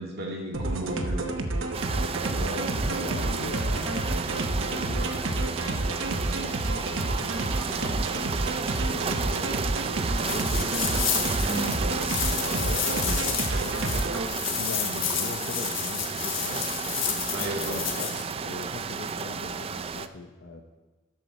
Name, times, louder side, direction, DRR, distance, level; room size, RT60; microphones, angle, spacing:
voice 1, 0.0-1.3 11.4-11.8 17.3-17.9, right 1 dB, 55° right, -1 dB, 2.2 m, -33 dB
sound 1, 0.5-14.3, right 2 dB, 75° right, 0.9 m, -29 dB
sound 2, 1.7-20.1, right 5 dB, 30° right, 0.3 m, -33 dB
voice 2, 2.4-8.1 8.8-11.0 11.5-14.0 14.5-16.7 17.5-20.7, left 2 dB, 70° left, 3 dB, 0.8 m, -40 dB
sound 3, 10.1-18.2, left 9 dB, 85° left, 1.3 m, -31 dB
13.0 x 7.7 x 4.2 m, 1.2 s
head